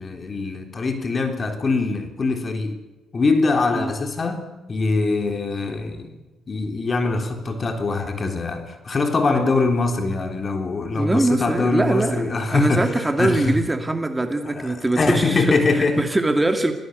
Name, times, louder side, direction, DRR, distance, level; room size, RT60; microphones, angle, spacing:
voice 1, 0.0-2.7 3.1-6.2 6.5-13.6 14.4-16.1, left 3 dB, 35° left, 6 dB, 3.7 m, -23 dB
voice 2, 10.9-15.6 16.0-16.7, right 2 dB, 15° right, 6 dB, 2.3 m, -22 dB
26.5 x 17.5 x 8.1 m, 1.1 s
cardioid pair, 90°, 0 cm